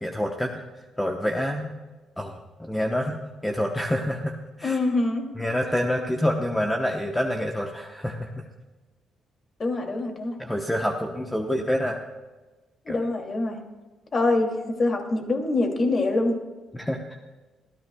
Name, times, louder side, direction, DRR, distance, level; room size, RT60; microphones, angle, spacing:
voice 1, 0.0-0.5 1.0-1.7 2.2-4.8 5.4-8.4 10.4-12.0 12.9-13.0 16.7-17.0, equal, 10° left, 2 dB, 1.0 m, -27 dB
voice 2, 4.6-5.3 9.6-10.4 12.8-13.6 14.1-16.4, left 2 dB, 40° left, 3 dB, 2.6 m, -24 dB
26.5 x 14.5 x 2.3 m, 1.3 s
cardioid pair, 90°, 0 cm